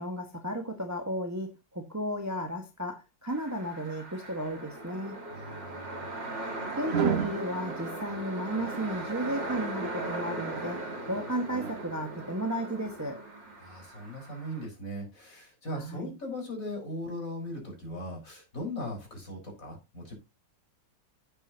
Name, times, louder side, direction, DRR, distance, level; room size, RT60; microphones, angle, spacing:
voice 1, 0.0-5.2 6.8-13.2 15.7-16.1, right 1 dB, 10° right, 1.4 m, -34 dB
sound 1, 3.3-14.7, right 2 dB, 85° right, 3.4 m, -39 dB
voice 2, 5.3-6.1 13.6-20.1, left 1 dB, 45° left, 5.2 m, -39 dB
sound 2, 6.9-7.4 8.5-9.0 9.8-10.8 11.5-11.9, right 9 dB, 55° right, 0.7 m, -33 dB
11.5 x 8.9 x 2.8 m
omnidirectional pair, 1.9 m